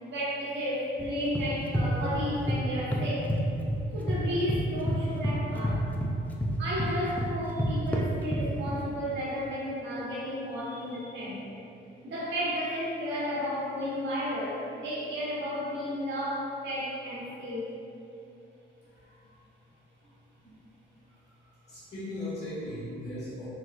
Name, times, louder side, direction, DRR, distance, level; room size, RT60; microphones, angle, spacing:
voice 1, 0.0-3.3 3.9-5.8 6.6-11.4 12.0-17.7, equal, 65° right, -7 dB, 1.1 m, -33 dB
sound 1, 1.0-2.6 2.9-4.2 4.5-8.8, equal, 10° left, 0.3 m, -29 dB
voice 2, 18.8-19.3 20.0-20.2 20.4-20.5 21.4-23.5, left 1 dB, 35° left, -12 dB, 1.4 m, -39 dB
4.1 x 2.2 x 2.5 m, 2.7 s
cardioid pair, 90°, 20 cm